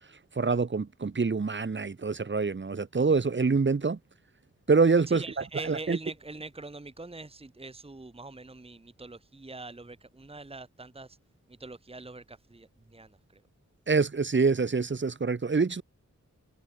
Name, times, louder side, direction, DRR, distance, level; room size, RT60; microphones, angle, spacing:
voice 1, 0.4-4.0 4.7-5.2 5.7-6.0 13.9-15.8, right 4 dB, 40° right, 1.2 m, -25 dB
voice 2, 5.1-11.2 11.5-13.4, right 3 dB, 20° right, 1.3 m, -43 dB
wide cardioid pair, 105°, 30 cm